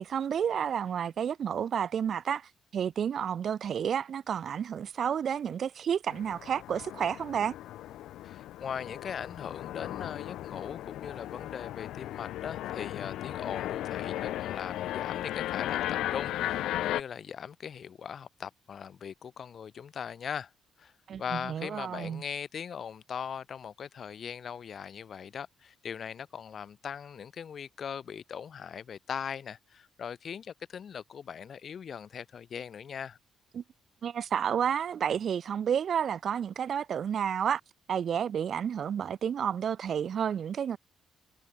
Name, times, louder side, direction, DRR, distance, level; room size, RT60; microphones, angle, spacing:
voice 1, 0.0-7.5 21.1-22.2 33.5-33.6 34.0-37.6 37.9-40.8, right 8 dB, 60° right, 1.8 m, -31 dB
sound 1, 6.1-17.0, left 13 dB, 85° left, 1.1 m, -36 dB
voice 2, 8.2-20.5 20.8-20.9 21.2-33.2, left 7 dB, 55° left, 7.9 m, -40 dB
cardioid pair, 90°, 0 cm